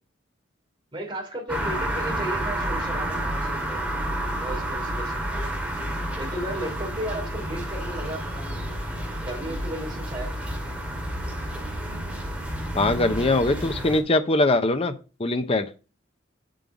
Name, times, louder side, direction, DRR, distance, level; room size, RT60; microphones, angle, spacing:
voice 1, 0.9-5.5 6.2-8.9 9.2-10.3, right 1 dB, 25° right, -1 dB, 3.1 m, -35 dB
sound 1, 1.5-14.0, right 1 dB, 5° right, 2.3 m, -30 dB
voice 2, 12.7-14.9 15.2-15.7, left 2 dB, 30° left, 9 dB, 0.7 m, -22 dB
7.8 x 5.5 x 4.9 m, 0.34 s
head